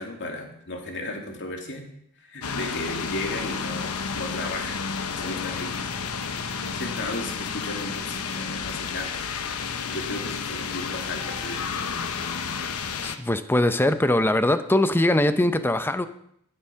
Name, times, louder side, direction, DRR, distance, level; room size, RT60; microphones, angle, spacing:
voice 1, 0.0-1.9 2.2-4.8 5.2-5.9 6.7-9.3 9.9-11.7, left 2 dB, 55° left, 2 dB, 2.5 m, -35 dB
sound 1, 2.4-13.2, left 5 dB, 90° left, 1.0 m, -31 dB
voice 2, 13.0-16.1, left 1 dB, 10° left, 10 dB, 0.6 m, -21 dB
12.0 x 9.9 x 5.7 m, 0.71 s
head